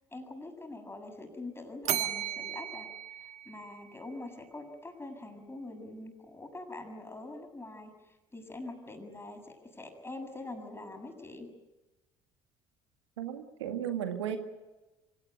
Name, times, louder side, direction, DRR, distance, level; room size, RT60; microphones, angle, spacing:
voice 1, 0.1-2.9 3.2-11.5, left 2 dB, 15° left, 4 dB, 7.6 m, -44 dB
Bell, 1.8-4.1, right 11 dB, 50° right, 1.4 m, -36 dB
voice 2, 13.2-14.4, right 9 dB, 80° right, 7 dB, 2.0 m, -34 dB
25.0 x 18.5 x 9.4 m, 1.1 s
hypercardioid pair, 60°, 15 cm